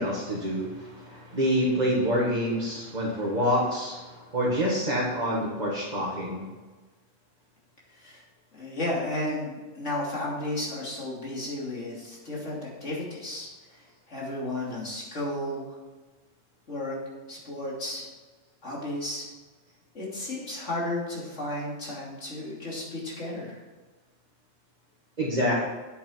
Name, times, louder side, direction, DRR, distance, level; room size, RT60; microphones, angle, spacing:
voice 1, 0.0-6.4 25.2-25.6, equal, 35° right, -6 dB, 2.0 m, -27 dB
voice 2, 7.9-8.2 8.5-15.8 16.7-17.0 17.3-18.1 18.6-19.3 19.9-23.6, left 1 dB, 75° left, -4 dB, 3.2 m, -33 dB
9.4 x 8.2 x 4.6 m, 1.3 s
omnidirectional pair, 1.3 m